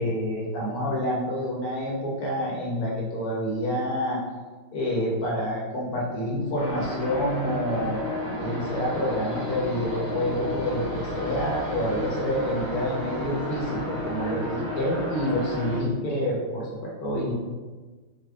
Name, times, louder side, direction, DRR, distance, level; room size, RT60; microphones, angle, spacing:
voice 1, 0.0-4.2 4.7-8.1 8.4-17.3, equal, 60° left, -3 dB, 1.1 m, -28 dB
sound 1, 6.6-15.8, left 1 dB, 30° right, 0.4 m, -32 dB
6.6 x 2.3 x 2.4 m, 1.3 s
omnidirectional pair, 2.1 m